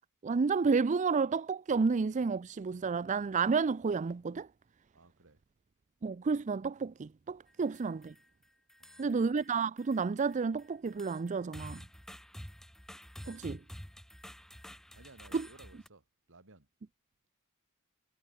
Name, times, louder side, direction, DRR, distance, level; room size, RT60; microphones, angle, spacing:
voice 1, 0.2-4.5 6.0-8.1 9.0-11.8 13.4-13.6 15.3-15.5, right 5 dB, 35° right, 0.4 m, -31 dB
voice 2, 4.9-5.4 8.8-9.3 13.2-13.4 14.9-16.7, right 3 dB, 60° right, 3.1 m, -58 dB
sound 1, 7.5-8.3 8.7-9.5 9.8-15.9, equal, ahead, 0.7 m, -50 dB
head